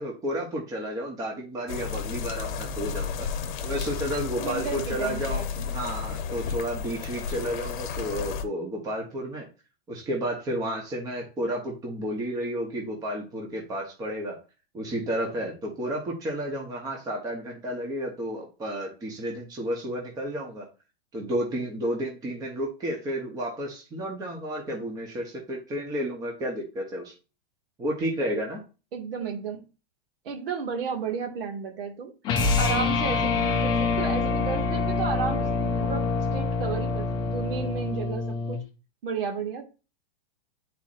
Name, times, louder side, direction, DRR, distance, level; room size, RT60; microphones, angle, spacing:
voice 1, 0.0-3.3 3.6-9.5 9.9-14.4 14.7-20.7 21.1-27.1 27.8-28.6, equal, 10° right, 1.0 m, -32 dB
sound 1, 1.7-8.4, left 6 dB, 50° left, 1.0 m, -32 dB
voice 2, 4.4-5.6 28.9-29.6 30.2-32.1 32.6-38.6 39.0-39.7, right 6 dB, 60° right, 2.0 m, -33 dB
sound 2, 32.2-38.6, left 4 dB, 15° left, 0.6 m, -26 dB
10.0 x 4.2 x 2.5 m
supercardioid pair, 165°, 31 cm